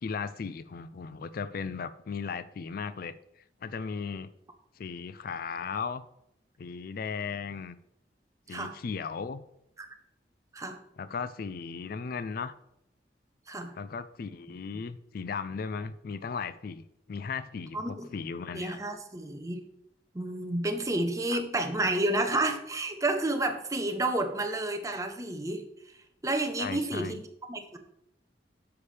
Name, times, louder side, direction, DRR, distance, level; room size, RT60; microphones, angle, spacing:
voice 1, 0.0-4.3 4.8-6.0 6.6-7.8 8.5-9.4 11.0-12.5 13.7-18.8 21.3-21.4 26.6-27.2, left 5 dB, 55° left, 14 dB, 0.4 m, -36 dB
voice 2, 17.7-18.1 18.5-19.6 20.1-25.6 26.2-27.2 27.5-27.8, right 2 dB, 20° right, 6 dB, 0.9 m, -30 dB
9.7 x 6.8 x 3.3 m, 0.79 s
head